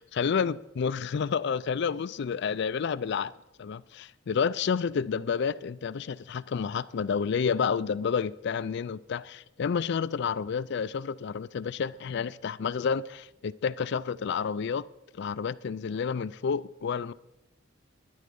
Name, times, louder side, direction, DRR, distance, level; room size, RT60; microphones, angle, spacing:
voice 1, 0.0-3.3 3.6-14.9 15.2-17.1, left 6 dB, 60° left, 0.4 m, -30 dB
11.5 x 10.5 x 5.4 m
head